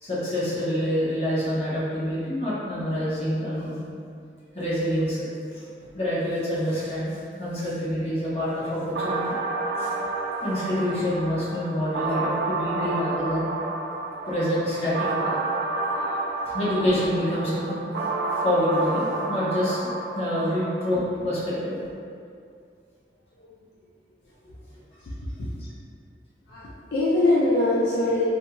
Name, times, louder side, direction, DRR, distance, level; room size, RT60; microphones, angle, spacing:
voice 1, 0.0-3.7 4.5-5.6 5.9-9.3 9.8-9.9 10.4-13.5 14.3-15.3 16.4-17.8 18.4-21.7, equal, 35° left, -10 dB, 0.8 m, -27 dB
sound 1, 8.9-20.9, right 3 dB, 75° right, 0.3 m, -30 dB
voice 2, 25.1-25.5 26.5-28.3, left 2 dB, 65° left, -7 dB, 0.3 m, -24 dB
2.8 x 2.6 x 2.2 m, 2.4 s
head